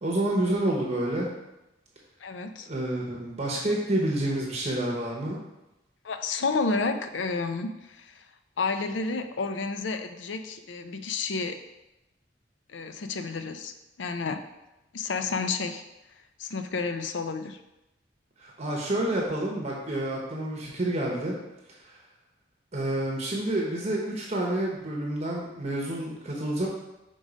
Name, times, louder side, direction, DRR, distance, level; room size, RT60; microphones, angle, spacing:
voice 1, 0.0-1.3 2.6-5.4 18.4-21.4 21.7-22.0 22.7-26.7, right 1 dB, 35° right, -2 dB, 0.9 m, -29 dB
voice 2, 2.2-2.7 6.0-8.3 8.6-11.6 12.7-14.4 14.9-15.8 16.4-17.6, left 4 dB, 75° left, 8 dB, 0.5 m, -31 dB
5.3 x 3.8 x 4.9 m, 0.94 s
head